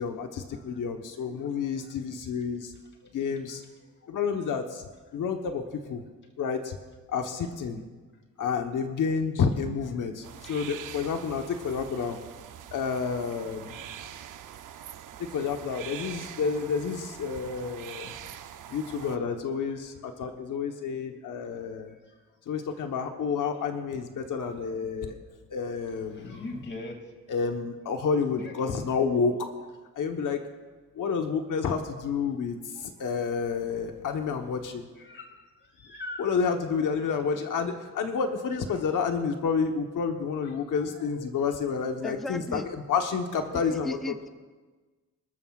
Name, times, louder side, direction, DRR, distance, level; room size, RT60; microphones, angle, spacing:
voice 1, 0.0-2.7 3.1-3.6 4.0-4.8 5.1-6.0 6.4-6.8 7.1-7.8 8.4-12.2 12.7-14.1 15.3-18.3 18.7-21.9 22.5-25.2 25.5-26.5 27.3-29.7 29.9-30.4 30.9-34.9 36.2-42.6 42.9-44.0, left 5 dB, 75° left, 4 dB, 1.2 m, -30 dB
sound 1, 10.2-19.2, right 10 dB, 75° right, 0.7 m, -44 dB
voice 2, 26.1-27.2 28.3-28.7 33.0-33.1 35.0-36.3 38.7-38.8 40.4-41.1, left 2 dB, 35° left, 2 dB, 2.5 m, -43 dB
voice 3, 42.0-42.7 43.5-44.3, left 1 dB, ahead, 8 dB, 0.5 m, -37 dB
26.0 x 13.0 x 2.5 m, 1.3 s
wide cardioid pair, 150°, 32 cm